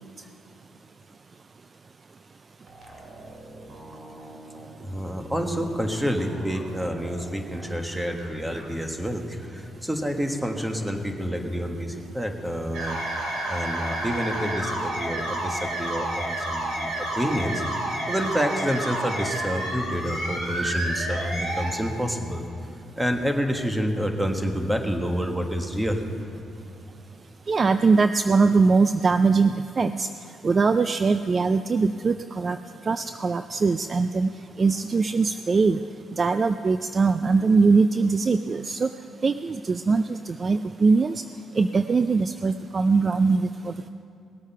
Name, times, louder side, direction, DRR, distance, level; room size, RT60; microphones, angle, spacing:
sound 1, 2.7-8.7 8.9-9.0 10.7-11.7, right 1 dB, 55° right, 2.4 m, -44 dB
voice 1, 4.8-13.0 13.5-17.6 18.1-22.4 23.0-26.0, equal, 10° right, 4 dB, 1.4 m, -28 dB
sound 2, 12.7-21.7, right 1 dB, 75° right, 3.5 m, -30 dB
voice 2, 27.5-30.1 30.4-32.6 32.9-34.3 34.6-35.8 36.2-38.9 39.2-41.2 41.6-43.9, right 4 dB, 35° right, 10 dB, 0.3 m, -21 dB
19.0 x 8.2 x 5.6 m, 2.7 s
cardioid pair, 90°, 0 cm